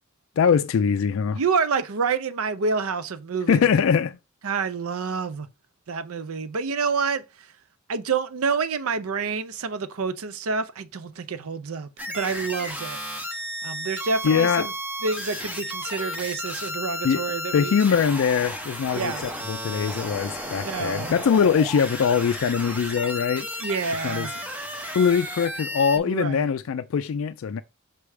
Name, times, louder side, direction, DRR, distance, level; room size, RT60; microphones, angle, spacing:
voice 1, 0.4-1.4 3.5-4.2 14.2-14.7 17.0-17.2 17.5-23.7 24.0-24.3 24.9-27.6, left 6 dB, 65° left, 0.3 m, -22 dB
voice 2, 1.3-3.6 4.4-5.5 5.9-7.5 7.9-13.0 13.6-14.7 15.0-17.8 18.9-19.2 20.6-21.1 23.6-24.4 26.0-26.5, right 5 dB, 80° right, 0.6 m, -28 dB
sound 1, 12.0-26.0, equal, 5° right, 0.8 m, -33 dB
5.9 x 3.3 x 4.8 m
head